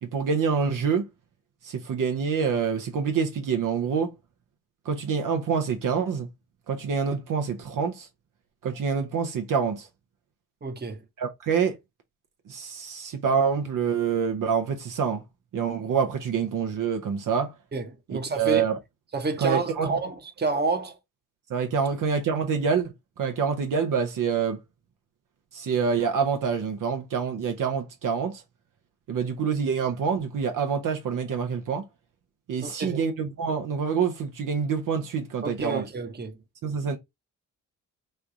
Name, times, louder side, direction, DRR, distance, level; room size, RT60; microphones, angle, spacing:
voice 1, 0.0-1.1 1.6-4.1 4.8-6.3 6.7-8.1 8.6-9.9 11.2-11.8 12.5-15.2 15.5-17.5 18.1-18.8 19.4-19.9 21.5-24.6 25.5-28.4 29.1-31.9 32.5-35.8 36.6-37.0, right 6 dB, 60° right, 0.9 m, -26 dB
voice 2, 10.6-11.0 17.7-18.6 19.1-21.0 32.6-33.0 35.4-36.4, right 3 dB, 25° right, 1.1 m, -29 dB
3.3 x 2.3 x 3.9 m
supercardioid pair, 60°, 37 cm